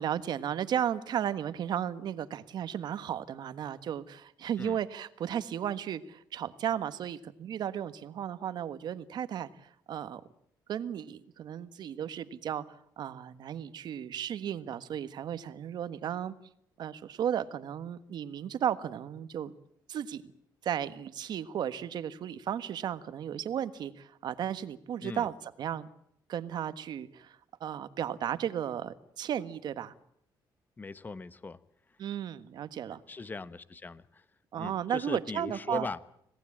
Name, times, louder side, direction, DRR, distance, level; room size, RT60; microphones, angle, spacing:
voice 1, 0.0-10.2 10.7-16.3 16.8-19.5 19.9-20.2 20.6-25.9 26.3-29.9 32.0-33.0 34.5-35.9, right 9 dB, 65° right, 12 dB, 1.5 m, -34 dB
voice 2, 30.8-31.6 31.9-32.0 33.1-34.2 34.6-36.0, left 3 dB, 25° left, 15 dB, 1.2 m, -39 dB
26.5 x 18.0 x 8.8 m, 0.71 s
cardioid pair, 115°, 8 cm